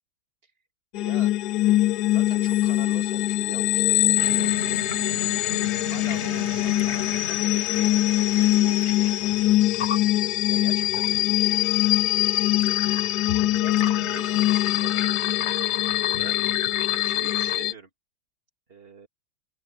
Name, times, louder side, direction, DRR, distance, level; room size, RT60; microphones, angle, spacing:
sound 1, 0.9-17.7, left 15 dB, 85° left, 0.8 m, -23 dB
voice 1, 0.9-1.3 2.0-3.9 4.3-4.8 5.8-9.6 10.5-12.8 13.6-15.1 16.1-16.4 17.0-17.9 18.7-19.1, right 4 dB, 25° right, 2.7 m, -45 dB
sound 2, 4.2-17.6, left 6 dB, 40° left, 1.2 m, -35 dB
open air
omnidirectional pair, 2.3 m